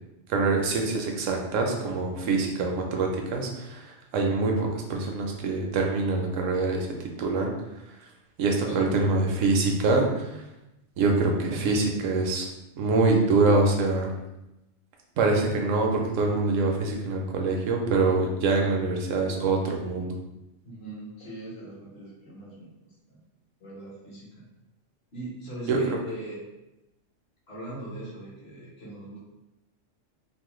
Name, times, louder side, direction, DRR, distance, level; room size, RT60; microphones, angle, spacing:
voice 1, 0.3-6.9 7.2-7.5 8.0-8.1 8.4-10.4 11.0-12.5 12.8-14.1 15.2-20.1 25.7-26.0, right 3 dB, 75° right, 1 dB, 0.9 m, -25 dB
voice 2, 8.7-9.0 20.6-23.2 23.6-24.4 25.1-26.4 27.5-29.2, right 1 dB, 55° left, -7 dB, 1.3 m, -40 dB
3.0 x 2.1 x 3.0 m, 0.94 s
omnidirectional pair, 1.3 m